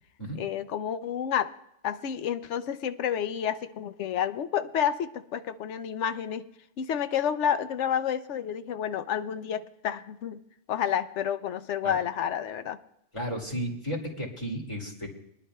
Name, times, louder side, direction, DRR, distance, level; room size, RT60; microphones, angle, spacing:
voice 1, 0.4-1.5 1.8-6.5 6.8-10.4 10.7-12.8, left 9 dB, 80° left, 11 dB, 0.9 m, -30 dB
voice 2, 13.1-15.1, equal, 25° left, -1 dB, 2.3 m, -33 dB
23.5 x 10.5 x 2.3 m, 0.79 s
omnidirectional pair, 1.2 m